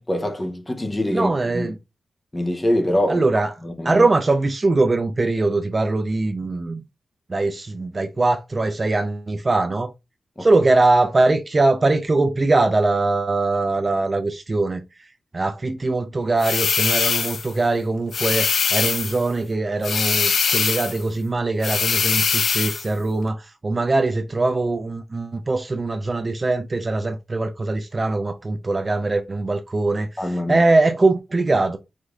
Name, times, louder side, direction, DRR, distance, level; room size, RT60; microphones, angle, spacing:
voice 1, 0.0-1.7 2.3-3.3 3.6-4.1 10.4-10.5 30.2-30.7, left 1 dB, 15° left, 0.7 m, -24 dB
voice 2, 1.1-1.8 3.1-3.5 3.8-6.8 7.3-9.9 10.4-14.8 15.3-31.8, right 2 dB, 25° right, 0.4 m, -21 dB
sound 1, 16.4-17.5 18.1-19.2 19.8-21.0 21.6-22.9, left 6 dB, 65° left, 0.5 m, -22 dB
4.8 x 2.6 x 3.6 m
wide cardioid pair, 175°, 0 cm